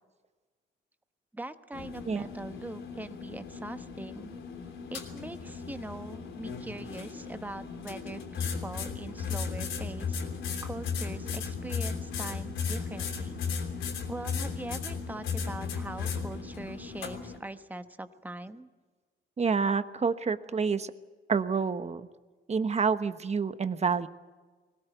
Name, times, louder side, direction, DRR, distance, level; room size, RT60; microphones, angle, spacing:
voice 1, 1.3-4.3 4.9-10.2 10.6-13.4 14.1-18.7, right 2 dB, 10° right, 9 dB, 1.1 m, -42 dB
sound 1, 1.7-17.4, left 5 dB, 80° left, 3.4 m, -36 dB
voice 2, 19.4-20.9 21.3-22.1 22.5-24.1, right 5 dB, 35° right, 11 dB, 1.1 m, -28 dB
21.0 x 18.5 x 9.2 m, 1.4 s
cardioid pair, 90°, 20 cm